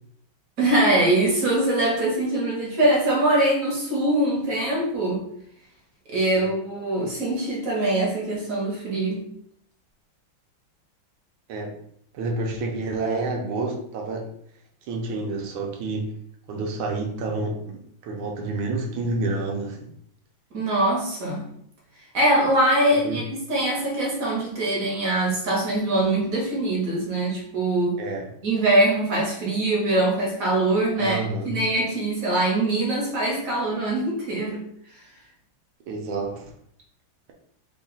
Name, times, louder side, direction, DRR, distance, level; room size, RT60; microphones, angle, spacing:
voice 1, 0.6-5.2 6.1-9.3 20.5-21.5 22.1-28.0 28.4-34.7, right 1 dB, 55° right, -3 dB, 1.1 m, -23 dB
voice 2, 12.1-14.3 14.9-16.1 16.5-19.9 23.0-23.2 28.0-28.2 31.0-31.6 35.9-36.5, right 3 dB, 85° right, 1 dB, 1.5 m, -29 dB
3.6 x 2.4 x 3.9 m, 0.68 s
omnidirectional pair, 2.2 m